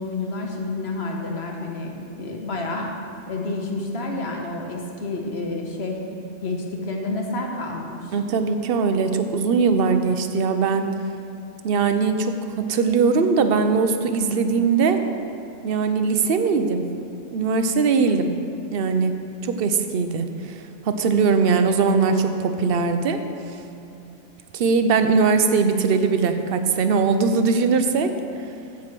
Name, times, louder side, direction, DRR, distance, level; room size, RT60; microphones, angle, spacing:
voice 1, 0.0-2.9 3.3-6.0 6.4-8.2, left 2 dB, 55° left, 1 dB, 1.5 m, -29 dB
voice 2, 8.1-10.9 11.6-15.0 15.6-16.8 17.3-18.3 18.7-19.1 19.4-23.2 24.5-28.1, right 5 dB, 55° right, 8 dB, 0.8 m, -20 dB
15.0 x 5.0 x 6.0 m, 2.8 s
omnidirectional pair, 1.3 m